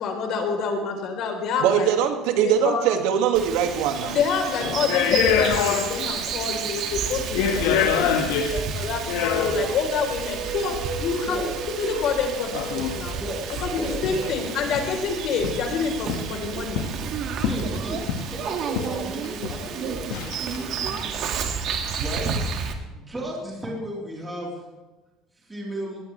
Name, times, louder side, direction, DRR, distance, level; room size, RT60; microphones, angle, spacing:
voice 1, 0.0-1.9 2.4-2.8 4.1-11.5 11.8-13.2 13.6-16.8, left 5 dB, 50° left, 3 dB, 3.8 m, -27 dB
voice 2, 1.6-4.2, right 8 dB, 80° right, 5 dB, 2.1 m, -22 dB
Bird vocalization bird call bird song, 3.3-22.7, right 6 dB, 50° right, 1.9 m, -31 dB
sound 1, 4.0-4.2 4.8-6.2 6.5-6.6 7.2-9.8 10.7-10.8 12.5-13.0 13.5-13.6 13.8-14.3 14.6-15.0 15.4-15.7 16.1-17.0 17.4-18.4 18.8-19.0 19.2-19.7 20.1-20.6, left 8 dB, 90° left, 1.6 m, -25 dB
sound 2, 9.7-17.2, right 3 dB, 65° right, 4.8 m, -37 dB
voice 3, 13.8-14.2 17.4-18.0 18.2-21.2 22.0-22.5 22.9-24.6 25.5-26.0, right 1 dB, 10° right, -4 dB, 3.9 m, -34 dB
22.0 x 19.0 x 3.4 m, 1.1 s
cardioid pair, 170°, 0 cm